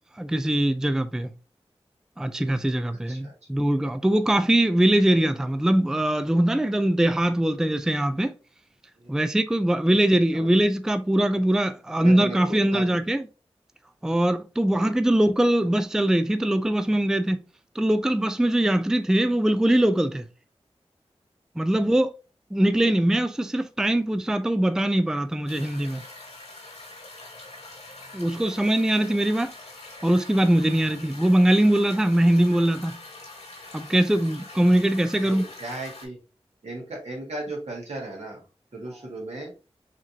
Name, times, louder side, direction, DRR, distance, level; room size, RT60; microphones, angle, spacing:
voice 1, 0.2-1.3 2.2-8.3 9.1-13.3 14.0-17.4 17.8-20.3 21.6-22.1 22.5-26.0 28.1-29.5 30.0-33.0 33.7-35.5, right 1 dB, 5° right, 0.4 m, -22 dB
voice 2, 12.0-13.0 14.8-14.9 35.2-36.2 36.6-38.4 38.7-39.5, right 2 dB, 75° right, 1.9 m, -36 dB
sound 1, 25.5-36.1, left 2 dB, 85° left, 2.1 m, -44 dB
4.9 x 3.0 x 2.7 m
wide cardioid pair, 50°, 11 cm